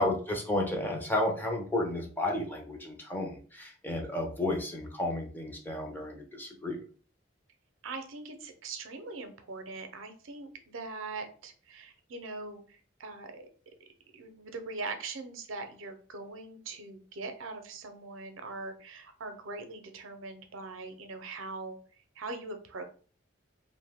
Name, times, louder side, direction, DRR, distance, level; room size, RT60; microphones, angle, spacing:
voice 1, 0.0-6.8, left 1 dB, 10° left, 1 dB, 0.4 m, -32 dB
voice 2, 7.8-13.5 14.1-21.8 22.2-22.8, right 3 dB, 80° right, 7 dB, 0.5 m, -41 dB
2.6 x 2.1 x 3.4 m, 0.41 s
head